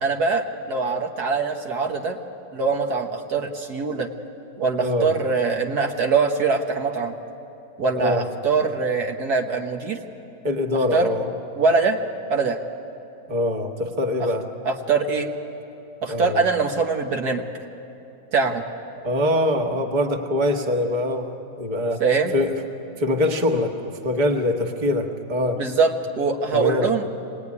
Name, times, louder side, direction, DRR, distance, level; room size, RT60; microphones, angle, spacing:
voice 1, 0.0-2.2 2.5-4.1 4.6-7.1 7.8-10.0 10.9-11.1 11.6-12.0 12.3-12.6 14.2-14.3 14.6-15.3 16.0-17.5 18.3-18.6 22.0-22.3 25.6-27.1, right 4 dB, 65° right, 3 dB, 1.7 m, -23 dB
voice 2, 4.8-5.1 8.0-8.2 10.4-11.3 13.3-14.4 16.1-16.4 19.0-21.3 21.6-22.0 22.3-22.5 23.0-25.6 26.5-26.9, left 1 dB, 25° right, 3 dB, 1.5 m, -23 dB
25.0 x 19.0 x 9.7 m, 2.9 s
omnidirectional pair, 1.9 m